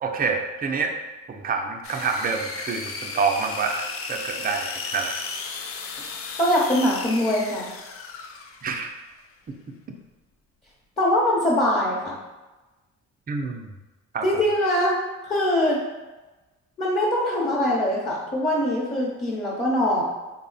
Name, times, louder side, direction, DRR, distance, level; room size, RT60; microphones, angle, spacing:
voice 1, 0.0-0.9 1.3-5.2 8.6-8.9 13.3-13.7 14.1-14.3, right 5 dB, 30° right, 3 dB, 0.5 m, -27 dB
sound 1, 1.8-8.8, left 4 dB, 50° left, 0.4 m, -35 dB
voice 2, 6.4-7.7 11.0-12.2 14.2-14.9 15.2-15.8 16.8-20.0, left 1 dB, 25° left, -5 dB, 0.9 m, -22 dB
3.7 x 2.1 x 3.9 m, 1.1 s
cardioid pair, 90°, 30 cm